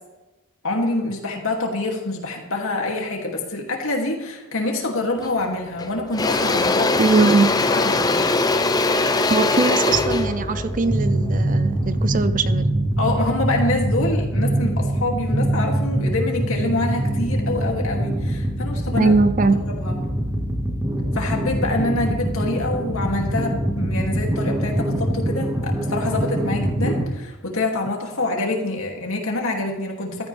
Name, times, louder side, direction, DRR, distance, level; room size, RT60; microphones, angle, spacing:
voice 1, 0.6-7.0 7.6-8.3 13.0-19.1 19.7-20.0 21.1-30.3, left 2 dB, 60° left, 0 dB, 2.6 m, -26 dB
Engine / Drill, 5.2-5.4 5.8-11.9, left 3 dB, 15° left, 0.6 m, -21 dB
voice 2, 7.0-7.5 9.3-12.7 19.0-19.6, right 3 dB, 35° right, 12 dB, 0.6 m, -20 dB
sound 1, 9.9-27.1, right 1 dB, 15° right, 1.6 m, -24 dB
15.5 x 13.0 x 3.4 m, 1.1 s
head